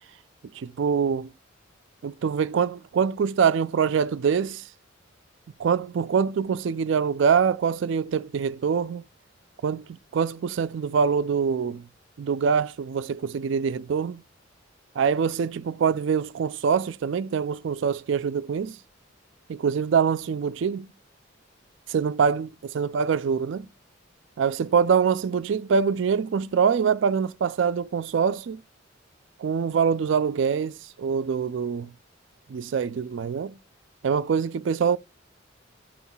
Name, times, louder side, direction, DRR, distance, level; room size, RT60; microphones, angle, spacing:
voice 1, 0.5-1.3 2.0-4.6 5.6-9.0 9.6-11.8 12.2-14.2 15.0-18.8 19.5-20.9 21.9-23.6 24.4-28.6 29.4-31.9 32.5-33.6 34.0-35.0, right 6 dB, 65° right, 0.3 m, -24 dB
16.0 x 5.5 x 2.3 m
head